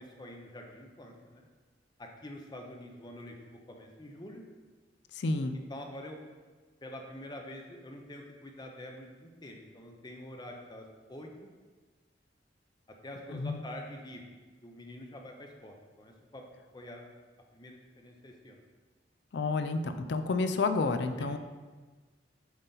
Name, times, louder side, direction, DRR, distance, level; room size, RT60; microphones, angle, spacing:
voice 1, 0.0-1.5 2.0-4.4 5.7-6.2 6.8-11.5 13.0-14.2 14.6-16.4 16.7-17.1 17.5-18.6 21.2-21.3, left 1 dB, 25° left, 2 dB, 0.6 m, -46 dB
voice 2, 5.1-5.6 13.3-13.6 19.3-21.4, left 3 dB, 65° left, 9 dB, 0.4 m, -30 dB
8.0 x 3.9 x 3.9 m, 1.4 s
head